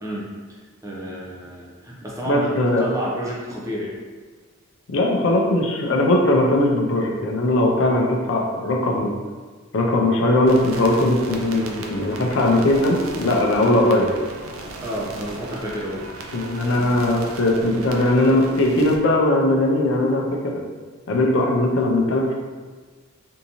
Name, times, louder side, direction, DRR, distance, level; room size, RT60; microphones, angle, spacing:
voice 1, 0.0-2.5 2.8-3.9 5.3-5.5 12.3-12.5 14.8-16.0, equal, 15° right, -4 dB, 0.6 m, -31 dB
voice 2, 2.2-2.8 4.9-9.1 9.7-14.1 16.3-20.6 21.1-22.3, left 1 dB, 65° left, -1 dB, 0.5 m, -19 dB
sound 1, 10.5-19.0, right 2 dB, 75° right, 0.5 m, -36 dB
3.5 x 2.7 x 2.9 m, 1.4 s
head